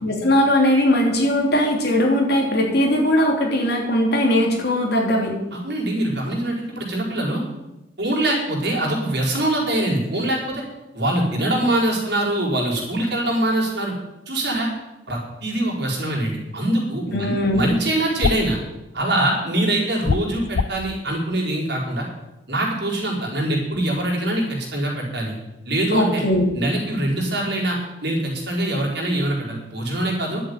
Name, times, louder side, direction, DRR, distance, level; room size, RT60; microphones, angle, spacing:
voice 1, 0.0-5.4 17.1-17.7 25.9-26.5, left 1 dB, 60° left, 0 dB, 3.2 m, -19 dB
voice 2, 5.5-7.4 8.0-10.6 10.9-13.9 14.3-14.7 15.1-18.6 18.9-22.1 22.5-25.4 25.6-26.2 26.5-30.4, right 1 dB, 60° right, -2 dB, 4.6 m, -23 dB
sound 1, 18.2-18.5 20.0-20.8, left 5 dB, 85° left, 0.5 m, -22 dB
11.5 x 7.8 x 9.4 m, 0.99 s
head